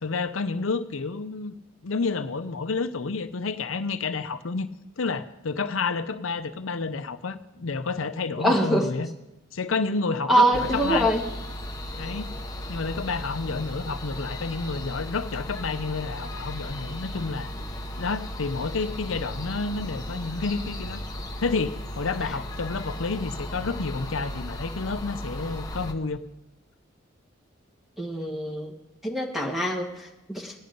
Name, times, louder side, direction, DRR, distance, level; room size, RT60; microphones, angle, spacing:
voice 1, 0.0-1.5 1.8-4.7 5.0-9.1 9.5-11.1 12.0-12.3 12.7-17.5 18.0-21.0 21.4-26.2, left 4 dB, 80° left, 10 dB, 0.6 m, -30 dB
voice 2, 8.4-8.9 10.3-11.2 28.0-28.7 29.0-30.5, right 1 dB, ahead, 0 dB, 1.7 m, -24 dB
sound 1, 10.5-25.9, equal, 20° left, 0.9 m, -36 dB
16.5 x 10.5 x 5.3 m, 0.94 s
head